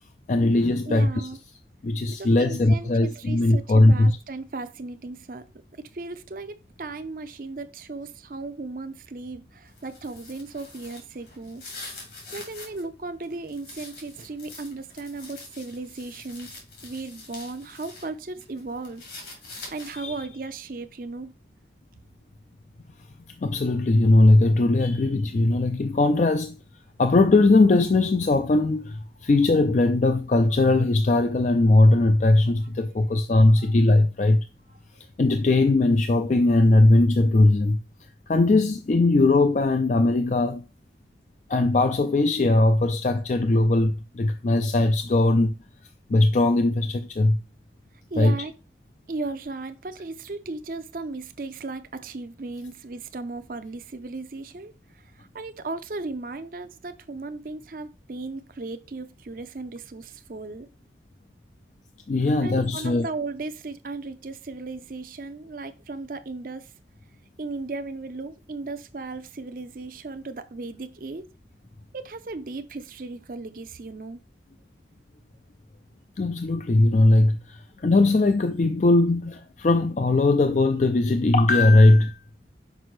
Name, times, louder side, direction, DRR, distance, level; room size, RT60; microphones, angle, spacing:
voice 1, 0.3-1.3 1.8-4.2 19.9-20.1 23.4-26.6 27.0-34.5 35.2-37.8 38.3-40.6 41.5-45.5 46.1-47.4 48.2-48.4 62.1-63.1 76.2-82.2, left 2 dB, 40° left, 0.4 m, -19 dB
voice 2, 0.8-1.4 2.1-5.4 5.9-11.6 12.3-16.5 16.8-19.0 19.7-21.3 33.6-33.7 48.1-48.5 49.1-54.7 55.0-60.7 62.4-66.7 67.4-71.3 71.9-74.2, right 3 dB, 50° right, 0.6 m, -36 dB
sound 1, 9.7-12.8 13.2-18.1 18.4-20.2, left 3 dB, 75° left, 2.8 m, -44 dB
6.0 x 5.1 x 3.2 m
head